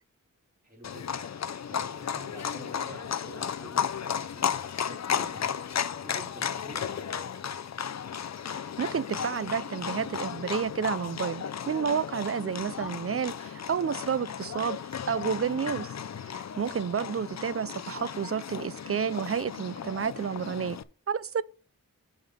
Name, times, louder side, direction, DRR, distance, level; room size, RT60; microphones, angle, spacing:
voice 1, 0.6-1.3 1.7-4.5 4.8-5.6 6.0-7.4 16.5-16.7, right 1 dB, 25° right, 3.5 m, -48 dB
Livestock farm animals working animals, 0.8-20.8, left 8 dB, 50° left, 0.5 m, -34 dB
voice 2, 8.8-14.8 15.1-15.9 16.2-20.8 21.1-21.4, right 7 dB, 45° right, 0.4 m, -30 dB
7.4 x 5.2 x 5.7 m
wide cardioid pair, 75°, 34 cm